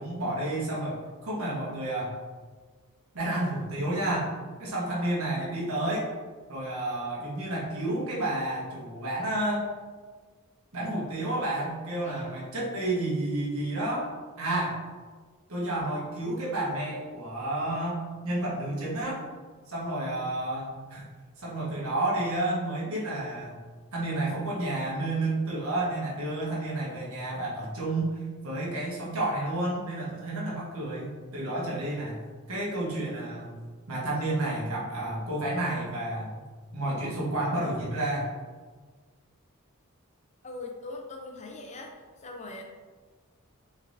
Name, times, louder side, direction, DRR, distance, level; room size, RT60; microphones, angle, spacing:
voice 1, 0.0-2.2 3.1-4.3 4.6-6.1 6.5-9.7 10.7-14.8 15.5-19.2 19.7-21.0 21.4-23.6 23.9-32.2 32.5-33.5 33.9-36.4 36.7-38.3, right 1 dB, 70° right, -5 dB, 1.3 m, -30 dB
voice 2, 40.4-41.9 42.2-42.6, left 2 dB, 30° left, 2 dB, 0.5 m, -41 dB
4.2 x 3.5 x 2.6 m, 1.5 s
head